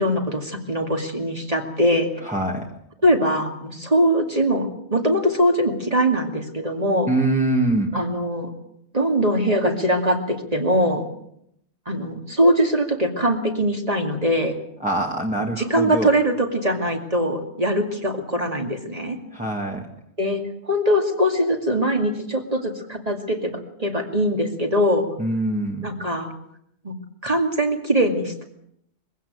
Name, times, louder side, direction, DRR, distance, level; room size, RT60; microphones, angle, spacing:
voice 1, 0.0-2.1 3.0-7.1 7.9-8.5 8.9-11.0 11.9-14.5 15.6-19.2 20.2-25.1 25.8-26.3 26.8-26.9 27.2-28.4, equal, 35° right, 2 dB, 2.5 m, -22 dB
voice 2, 2.2-2.7 7.1-8.0 14.8-16.2 19.3-19.9 25.2-25.9, right 2 dB, 5° right, -1 dB, 1.9 m, -24 dB
22.5 x 16.5 x 8.1 m, 0.74 s
omnidirectional pair, 1.1 m